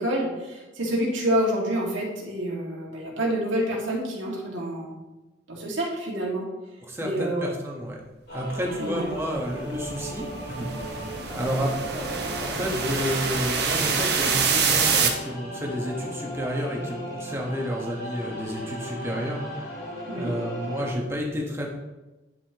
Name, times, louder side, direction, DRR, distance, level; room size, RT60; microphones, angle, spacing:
voice 1, 0.0-4.9 5.5-6.5 7.0-7.5 8.8-9.1 20.1-20.3, equal, 90° right, -3 dB, 2.1 m, -27 dB
voice 2, 6.8-8.0 8.3-19.6 20.1-21.7, equal, 15° right, -1 dB, 1.2 m, -31 dB
sound 1, 8.3-20.9, equal, 55° left, 2.3 m, -37 dB
sound 2, 9.1-15.1, right 5 dB, 55° right, 1.0 m, -26 dB
10.0 x 5.5 x 3.0 m, 1.1 s
head